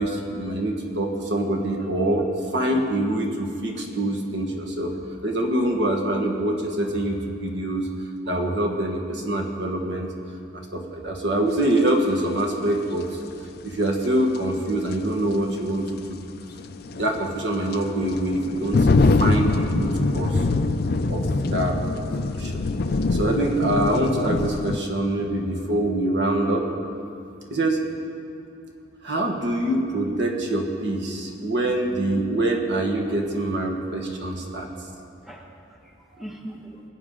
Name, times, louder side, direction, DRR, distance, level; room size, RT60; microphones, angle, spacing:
voice 1, 0.0-4.9 5.2-7.9 8.3-10.1 10.5-13.2 13.6-16.2 17.0-18.9 19.2-20.4 21.1-22.6 23.1-26.7 27.5-27.9 29.0-34.7, right 1 dB, 60° right, 1 dB, 1.5 m, -25 dB
sound 1, 11.8-11.9 14.4-14.5 14.9-15.0 16.6-24.8, left 3 dB, 50° left, 0.5 m, -23 dB
voice 2, 34.6-36.8, right 1 dB, ahead, -2 dB, 1.0 m, -42 dB
23.0 x 8.6 x 3.8 m, 2.5 s
head